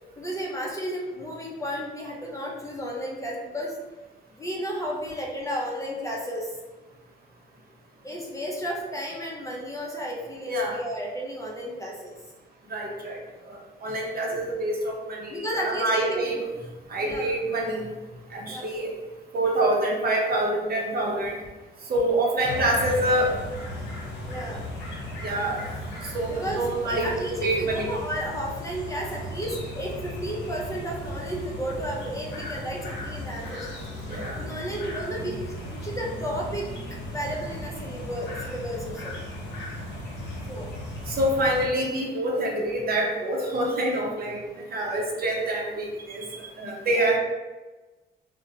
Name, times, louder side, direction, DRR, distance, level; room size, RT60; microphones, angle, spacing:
voice 1, 0.2-3.8 4.4-6.6 8.0-12.2 14.3-14.4 15.3-16.3 16.9-17.4 18.5-18.9 24.3-24.6 26.3-33.7 34.3-35.3 35.7-36.7 37.1-39.1 40.5-40.7 44.7-45.0 46.9-47.1, equal, 15° left, -3 dB, 0.5 m, -33 dB
voice 2, 12.7-13.2 13.8-16.4 16.9-17.9 18.3-18.9 19.3-21.3 21.9-23.3 25.2-25.6 26.1-27.1 27.4-27.9 34.1-34.3 41.1-47.2, right 1 dB, 50° right, -2 dB, 0.7 m, -26 dB
sound 1, 22.4-41.7, left 1 dB, 60° left, 0.8 m, -36 dB
2.7 x 2.1 x 2.7 m, 1.2 s
cardioid pair, 90°, 20 cm